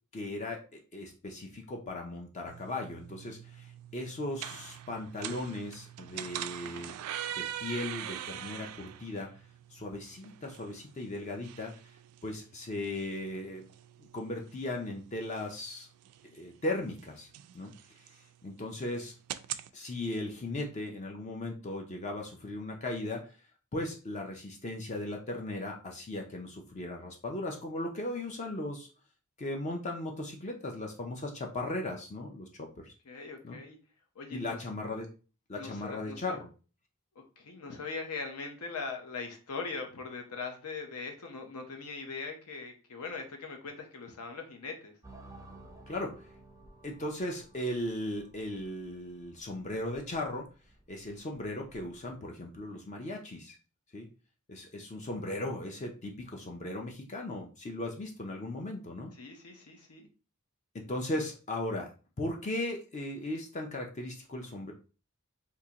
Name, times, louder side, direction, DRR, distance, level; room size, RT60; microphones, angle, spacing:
voice 1, 0.1-7.0 7.3-9.3 9.7-11.7 12.2-13.6 14.0-15.9 16.2-17.3 17.5-17.7 18.4-19.1 19.7-23.3 23.7-28.9 29.4-32.9 33.4-33.6 34.3-35.1 35.5-36.5 45.9-46.1 46.8-50.5 50.9-53.6 53.9-54.1 54.5-59.2 60.7-61.9 62.2-64.7, left 1 dB, 30° left, 2 dB, 0.5 m, -37 dB
sound 1, 2.5-19.7, right 11 dB, 85° right, 0.3 m, -44 dB
voice 2, 33.0-33.8 34.1-34.6 35.5-36.4 37.4-44.9 59.2-60.1, left 4 dB, 75° left, 3 dB, 0.8 m, -41 dB
sound 2, 45.0-52.2, right 2 dB, 15° right, 0.6 m, -55 dB
3.7 x 2.7 x 2.8 m, 0.35 s
head